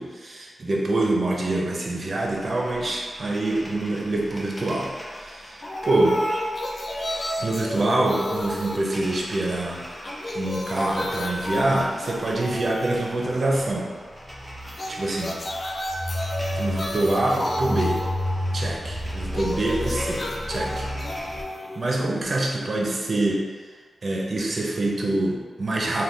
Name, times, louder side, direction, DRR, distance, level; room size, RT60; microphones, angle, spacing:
voice 1, 0.0-4.9 5.2-6.2 7.4-13.9 14.9-15.4 16.5-18.0 18.5-20.9 21.8-23.4 24.0-26.0, right 2 dB, 55° right, -2 dB, 0.5 m, -25 dB
sound 1, 2.2-21.4, equal, ahead, 0.7 m, -34 dB
sound 2, 5.6-9.6 9.9-13.7 14.6-22.6, left 1 dB, 50° left, 0.4 m, -32 dB
3.2 x 2.2 x 2.6 m, 1.5 s
cardioid pair, 50°, 0 cm